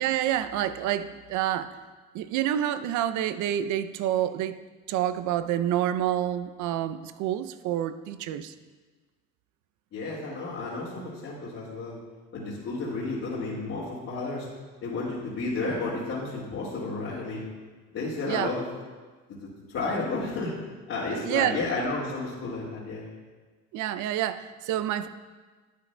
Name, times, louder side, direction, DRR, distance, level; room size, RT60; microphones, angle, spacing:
voice 1, 0.0-1.8 2.1-4.6 4.9-8.5 18.3-18.5 21.2-21.6 23.7-25.1, right 11 dB, 55° right, 13 dB, 0.5 m, -28 dB
voice 2, 9.9-12.0 12.3-14.5 14.8-17.5 17.9-18.6 19.7-20.5 20.9-23.1, left 3 dB, 45° left, -8 dB, 1.9 m, -32 dB
10.5 x 8.5 x 2.2 m, 1.4 s
supercardioid pair, 100°, 36 cm